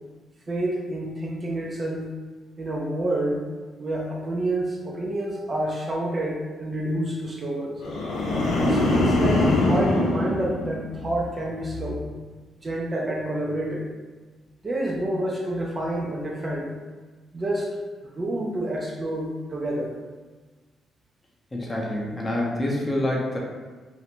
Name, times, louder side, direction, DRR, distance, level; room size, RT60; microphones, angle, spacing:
voice 1, 0.5-2.1 2.6-3.5 3.8-7.8 8.6-12.0 12.6-13.9 14.6-16.8 17.3-20.0, right 1 dB, 30° right, -1 dB, 0.4 m, -28 dB
sound 1, 7.8-11.2 11.6-12.0, left 2 dB, 75° left, 0.6 m, -23 dB
voice 2, 21.5-23.4, left 1 dB, 20° left, -3 dB, 0.6 m, -26 dB
2.5 x 2.1 x 2.9 m, 1.3 s
cardioid pair, 90°, 0 cm